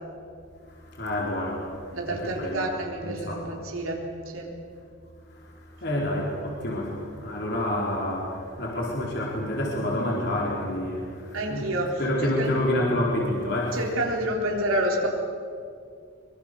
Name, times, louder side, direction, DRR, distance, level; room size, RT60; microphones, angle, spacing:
voice 1, 0.7-2.7 3.0-3.6 5.3-11.7 12.0-13.9, left 1 dB, 50° left, -3 dB, 4.4 m, -28 dB
voice 2, 1.9-4.1 4.3-4.5 11.3-12.0 12.4-12.5 13.7-15.1, right 1 dB, 85° right, 0 dB, 3.9 m, -28 dB
24.5 x 24.0 x 7.0 m, 2.3 s
head